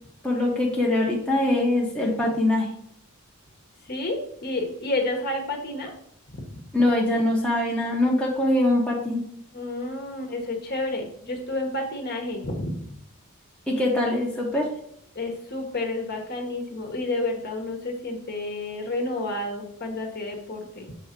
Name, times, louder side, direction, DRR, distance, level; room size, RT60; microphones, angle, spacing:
voice 1, 0.2-2.7 6.7-9.2 13.7-14.7, left 1 dB, 5° left, -3 dB, 0.9 m, -23 dB
voice 2, 3.9-5.9 6.4-6.5 9.5-12.9 15.1-20.9, left 2 dB, 45° left, 2 dB, 1.2 m, -30 dB
7.0 x 3.9 x 4.5 m, 0.72 s
head